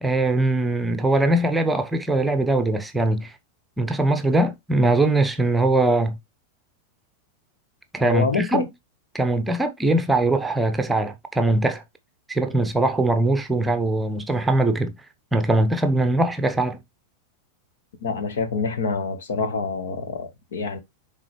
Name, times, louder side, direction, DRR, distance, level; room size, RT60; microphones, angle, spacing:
voice 1, 0.0-3.3 3.8-6.2 7.9-8.7 9.1-11.8 12.3-14.9 15.3-16.8, right 2 dB, 10° right, 0.9 m, -21 dB
voice 2, 8.0-8.7 18.0-20.8, left 5 dB, 60° left, 1.5 m, -26 dB
10.0 x 3.7 x 3.2 m
figure-of-eight pair, 90°, 0 cm